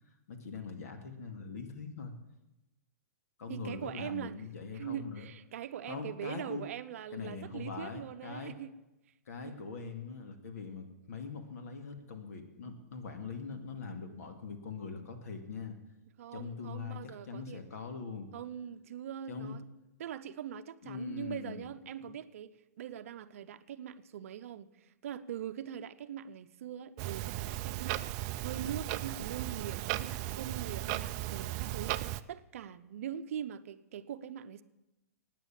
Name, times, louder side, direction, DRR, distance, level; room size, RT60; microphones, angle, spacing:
voice 1, 0.3-2.2 3.4-5.3 5.9-6.6 7.1-8.5 9.3-15.8 16.3-18.3 19.3-19.6 20.8-21.7 22.0-22.1, left 5 dB, 65° left, 2.3 m, -42 dB
voice 2, 3.5-4.4 4.7-8.7 9.4-9.6 16.2-17.6 18.3-19.6 20.0-34.6, right 9 dB, 55° right, 0.7 m, -42 dB
Clock, 27.0-32.2, right 15 dB, 30° right, 0.4 m, -36 dB
16.0 x 9.3 x 7.4 m
hypercardioid pair, 160°, 9 cm